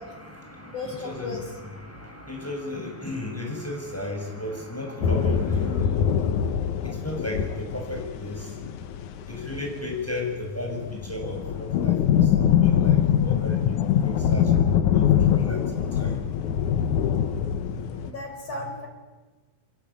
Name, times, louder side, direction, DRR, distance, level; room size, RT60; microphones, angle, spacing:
voice 1, 0.0-6.2 7.0-8.4 9.3-13.6 14.0-14.5 14.9-15.6 16.0-16.2, left 2 dB, 5° left, 1 dB, 6.4 m, -34 dB
voice 2, 0.7-1.4 14.5-14.6 18.0-18.9, left 2 dB, 40° left, 3 dB, 5.8 m, -35 dB
sound 1, 5.0-10.4 10.7-18.1, left 9 dB, 65° left, 2.2 m, -23 dB
29.0 x 22.0 x 8.5 m, 1.3 s
omnidirectional pair, 4.3 m